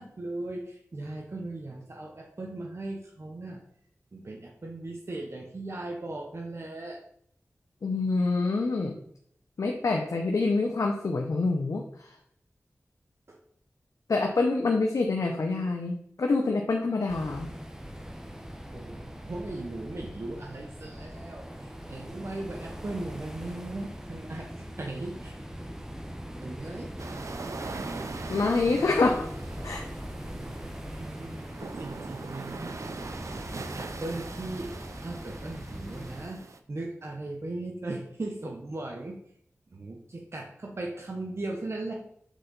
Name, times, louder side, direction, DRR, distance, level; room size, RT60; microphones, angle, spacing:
voice 1, 0.0-3.6 4.1-7.0 13.3-13.4 18.7-25.3 26.4-26.9 31.0-31.4 31.8-32.9 33.3-36.4 36.7-39.2 39.7-41.9, right 2 dB, 55° right, 1 dB, 0.9 m, -38 dB
voice 2, 7.8-8.9 9.6-11.8 14.1-17.5 28.3-29.3 29.6-29.8, left 3 dB, 75° left, 2 dB, 0.7 m, -26 dB
sound 1, 17.1-36.3, equal, 10° right, 0.8 m, -41 dB
sound 2, 27.0-36.6, right 3 dB, 70° right, 0.5 m, -41 dB
6.4 x 3.9 x 3.9 m, 0.65 s
cardioid pair, 50°, 5 cm